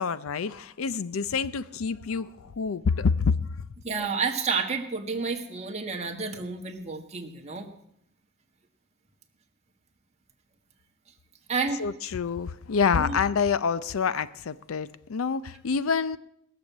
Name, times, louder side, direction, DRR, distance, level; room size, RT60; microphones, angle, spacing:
voice 1, 0.0-3.3 11.8-16.2, left 5 dB, 85° left, 0.5 m, -27 dB
voice 2, 3.8-7.7 11.5-11.8 13.0-13.2, right 4 dB, 35° right, 1.7 m, -30 dB
19.5 x 7.0 x 7.4 m
head